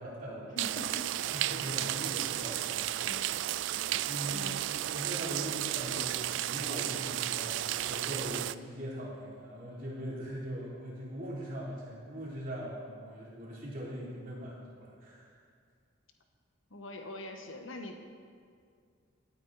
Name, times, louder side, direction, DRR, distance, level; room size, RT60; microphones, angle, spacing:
voice 1, 0.0-0.8 1.3-3.1 4.1-4.5 4.8-15.4, equal, 45° right, -6 dB, 3.3 m, -41 dB
voice 2, 0.6-1.1 3.0-3.3 4.3-4.6 16.7-18.1, left 1 dB, 75° left, 5 dB, 1.2 m, -43 dB
sound 1, 0.6-8.5, right 13 dB, 65° right, 0.3 m, -33 dB
17.0 x 9.4 x 4.1 m, 2.2 s
head